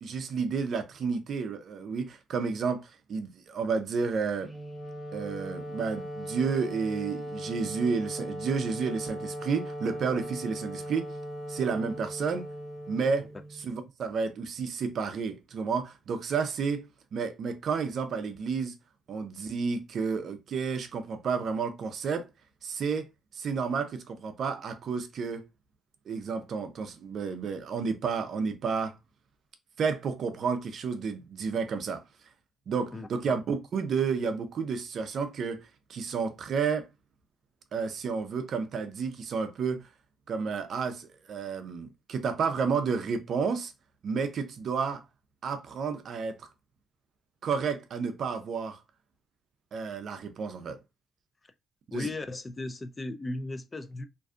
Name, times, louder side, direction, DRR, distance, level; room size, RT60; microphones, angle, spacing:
voice 1, 0.0-4.5 5.1-11.1 11.5-12.5 12.9-13.3 13.5-16.9 17.1-18.7 19.1-22.3 22.6-23.1 23.3-25.5 26.1-29.0 29.8-32.0 32.7-36.9 37.7-39.8 40.3-43.7 44.0-45.0 45.4-46.4 47.4-48.8 49.7-50.8 51.9-52.1, right 5 dB, 60° right, 0.4 m, -31 dB
Wind instrument woodwind instrument, 4.4-13.7, equal, 5° left, 0.7 m, -39 dB
voice 2, 32.9-33.3 51.9-54.1, left 2 dB, 25° left, 0.3 m, -36 dB
2.5 x 2.3 x 2.4 m
cardioid pair, 90°, 0 cm